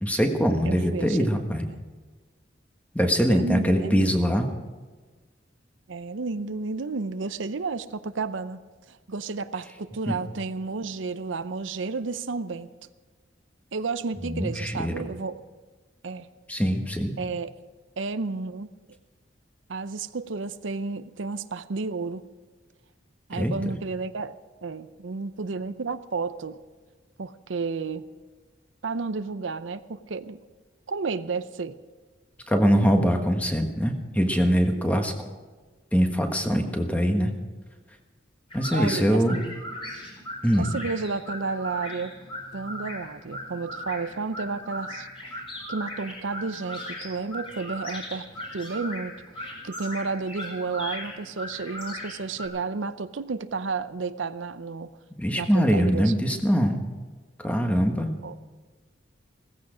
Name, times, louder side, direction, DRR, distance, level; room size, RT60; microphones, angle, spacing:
voice 1, 0.0-1.7 2.9-4.5 10.1-10.2 14.2-14.9 16.5-17.1 23.3-23.7 32.5-35.1 35.9-37.3 38.5-39.4 40.4-40.7 55.2-56.8 57.4-58.1, equal, 10° left, 4 dB, 1.4 m, -23 dB
voice 2, 0.6-1.8 3.3-4.1 5.9-8.6 8.9-12.7 13.7-15.4 16.0-16.3 17.2-17.5 18.0-18.7 19.7-22.2 23.3-24.3 24.6-26.6 27.2-28.1 28.8-30.4 30.9-31.8 38.7-39.2 40.6-42.1 42.5-45.1 45.7-48.3 48.5-49.2 49.6-54.9 55.3-56.1 58.2-58.4, right 4 dB, 80° right, 13 dB, 0.6 m, -32 dB
sound 1, 38.5-52.5, left 1 dB, 30° left, 5.0 m, -38 dB
16.5 x 15.0 x 5.0 m, 1.3 s
head